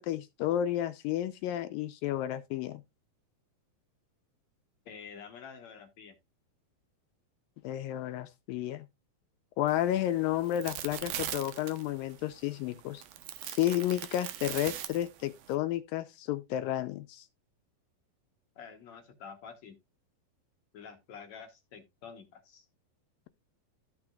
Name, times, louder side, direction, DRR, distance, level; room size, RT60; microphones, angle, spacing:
voice 1, 0.0-2.8 7.6-8.9 9.6-13.0 13.5-17.3, left 12 dB, 80° left, 2.3 m, -32 dB
voice 2, 4.9-6.2 18.6-19.8 20.7-22.7, left 6 dB, 60° left, 2.1 m, -48 dB
sound 1, 9.7-15.5, right 11 dB, 75° right, 2.7 m, -41 dB
14.0 x 6.1 x 2.4 m
omnidirectional pair, 4.3 m